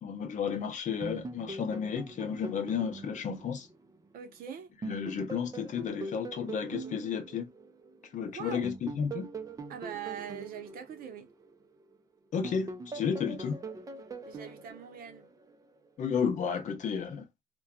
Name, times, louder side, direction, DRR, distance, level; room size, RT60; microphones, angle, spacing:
voice 1, 0.0-3.7 4.8-7.5 8.1-9.3 12.3-13.6 16.0-17.3, left 7 dB, 45° left, 0.7 m, -32 dB
sound 1, 1.0-4.4 4.8-8.1 8.6-12.0 12.4-15.7, right 3 dB, 20° right, 0.5 m, -43 dB
voice 2, 4.1-4.7 8.3-8.7 9.7-11.3 14.2-15.3, right 8 dB, 60° right, 0.7 m, -42 dB
2.6 x 2.2 x 2.2 m
cardioid pair, 110°, 17 cm